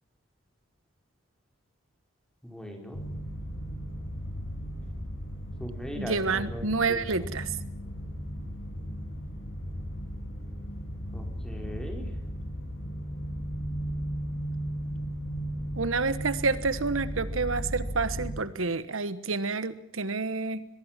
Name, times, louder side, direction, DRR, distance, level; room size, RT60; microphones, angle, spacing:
voice 1, 2.4-3.1 5.6-7.3 11.1-12.1, equal, 5° left, 2 dB, 4.6 m, -40 dB
sound 1, 2.9-18.4, equal, 60° left, 7.4 m, -36 dB
voice 2, 5.9-7.5 15.8-20.6, right 4 dB, 85° right, 14 dB, 1.3 m, -29 dB
23.0 x 21.5 x 7.6 m, 0.72 s
head